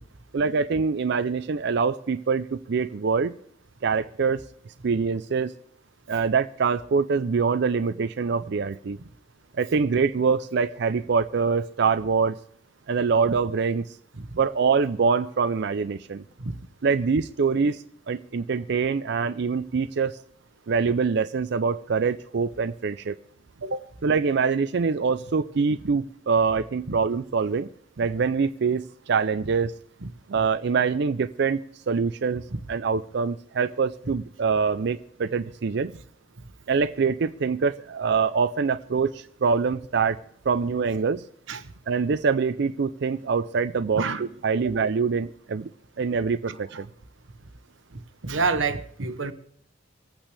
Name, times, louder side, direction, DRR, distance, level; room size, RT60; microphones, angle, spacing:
voice 1, 0.3-3.3 3.8-4.4 4.8-5.5 6.1-9.0 9.5-12.4 12.9-13.8 14.4-16.2 16.8-20.2 20.7-23.2 24.0-27.7 28.0-29.7 30.3-31.6 31.9-35.9 36.7-40.2 40.5-41.2 41.9-44.0 44.4-45.7 46.0-46.9, right 5 dB, 60° right, 0.4 m, -24 dB
voice 2, 43.9-44.3 44.6-44.7 46.5-46.8 48.2-49.3, right 4 dB, 80° right, 1.1 m, -28 dB
26.0 x 8.8 x 3.4 m
head